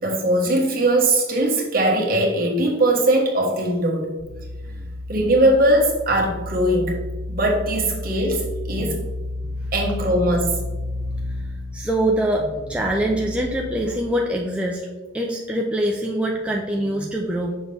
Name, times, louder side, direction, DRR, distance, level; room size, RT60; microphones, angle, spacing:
voice 1, 0.0-4.1 5.1-7.0 7.3-9.0 9.7-10.5, right 1 dB, 50° right, -1 dB, 1.4 m, -20 dB
sound 1, 4.2-14.1, left 2 dB, 85° right, 1.6 m, -32 dB
voice 2, 11.7-14.9 15.1-17.6, right 1 dB, 5° right, -1 dB, 0.4 m, -24 dB
6.2 x 5.2 x 3.4 m, 1.2 s
head